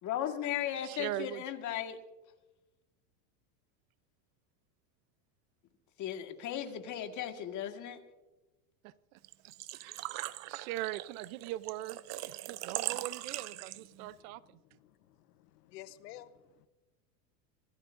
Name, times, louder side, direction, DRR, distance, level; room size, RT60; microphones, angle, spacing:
voice 1, 0.0-2.0 6.0-8.0, left 10 dB, 40° left, 1.8 m, -36 dB
voice 2, 0.8-1.4 8.8-9.2 9.7-10.1 10.5-12.0 12.3-14.4, right 15 dB, 65° right, 0.8 m, -40 dB
Engine / Trickle dribble / Fill (with liquid), 9.2-14.1, right 16 dB, 35° right, 0.6 m, -40 dB
voice 3, 14.6-16.7, left 13 dB, 85° left, 1.1 m, -52 dB
25.5 x 16.5 x 2.6 m
supercardioid pair, 130°, 46 cm